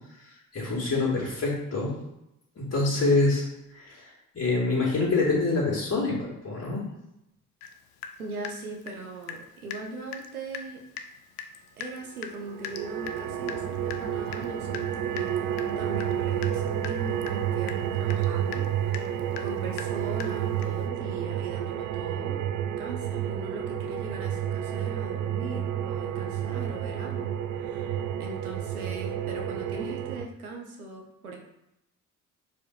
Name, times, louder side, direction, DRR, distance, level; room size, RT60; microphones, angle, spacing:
voice 1, 0.5-1.9 2.6-3.5 3.7-4.1 4.3-6.8, left 3 dB, 35° left, -6 dB, 2.3 m, -26 dB
Water tap faucet / Drip, 7.6-7.7 8.0-9.4 9.7-9.9 10.1-10.3 10.5-10.7 11.0-11.1 11.4-20.9, left 7 dB, 60° left, 0.6 m, -41 dB
voice 2, 8.2-10.8 11.8-22.5 22.8-31.4, right 2 dB, 90° right, 0 dB, 0.8 m, -40 dB
sound 1, 12.4-30.3, right 10 dB, 50° right, 0.5 m, -30 dB
4.9 x 3.6 x 5.5 m, 0.86 s
figure-of-eight pair, 45°, 42 cm